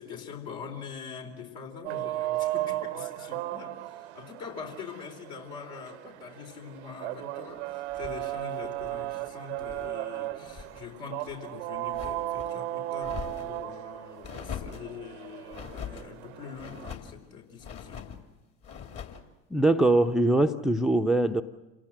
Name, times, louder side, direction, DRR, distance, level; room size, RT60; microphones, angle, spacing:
voice 1, 0.0-18.1, left 6 dB, 60° left, 1 dB, 4.0 m, -43 dB
sound 1, 1.8-16.9, right 16 dB, 60° right, 0.8 m, -36 dB
sound 2, 7.9-10.0 10.3-10.9 11.2-12.5 13.0-13.7 14.2-14.9 15.5-16.1 16.6-17.2 17.6-18.2 18.6-19.3, left 7 dB, 40° left, 2.6 m, -42 dB
voice 2, 19.5-21.4, right 1 dB, ahead, 10 dB, 0.7 m, -22 dB
27.5 x 18.0 x 7.5 m, 1.2 s
figure-of-eight pair, 70°, 38 cm